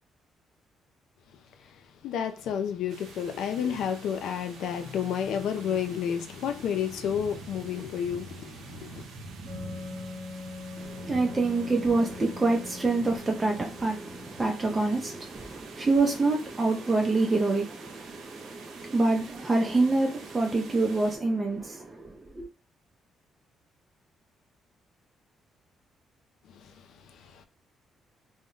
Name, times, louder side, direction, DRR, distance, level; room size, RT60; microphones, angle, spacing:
voice 1, 1.6-9.1 26.5-27.4, left 8 dB, 80° left, 0.4 m, -31 dB
sound 1, 2.9-21.2, right 4 dB, 80° right, 0.5 m, -47 dB
Wind instrument woodwind instrument, 9.5-14.8, left 4 dB, 45° right, 0.9 m, -43 dB
voice 2, 10.8-22.5, right 3 dB, 25° right, 0.4 m, -26 dB
2.1 x 2.1 x 3.7 m
cardioid pair, 90°, 0 cm